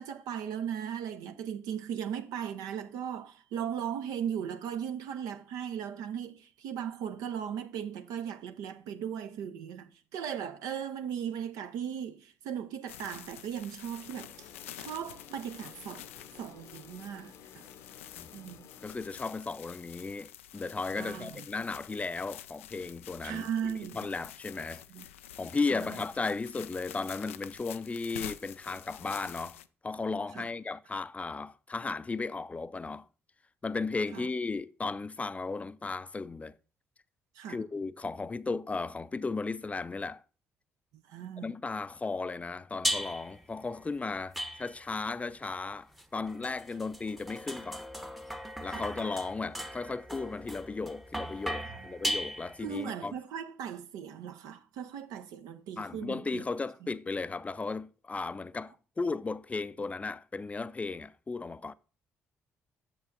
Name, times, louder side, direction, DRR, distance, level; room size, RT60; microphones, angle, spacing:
voice 1, 0.0-14.5 14.8-16.1 16.4-17.7 18.3-18.6 21.0-21.4 23.2-24.0 24.9-25.1 25.7-26.0 30.3-30.5 34.1-34.3 37.4-37.6 41.1-41.5 48.7-48.9 51.6-51.8 52.6-56.4 56.8-56.9, right 8 dB, 60° right, 0.7 m, -37 dB
sound 1, 12.9-29.7, left 11 dB, 75° left, 0.3 m, -48 dB
sound 2, 14.0-19.2, left 6 dB, 55° left, 0.8 m, -54 dB
voice 2, 18.8-24.8 25.4-29.6 29.8-33.1 33.6-36.5 37.5-40.2 41.4-47.8 48.6-53.2 55.8-61.7, left 4 dB, 20° left, 0.5 m, -35 dB
sound 3, 42.8-43.4 44.3-45.0 46.0-52.8, equal, ahead, 0.9 m, -37 dB
10.5 x 7.4 x 2.5 m
figure-of-eight pair, 45°, 7 cm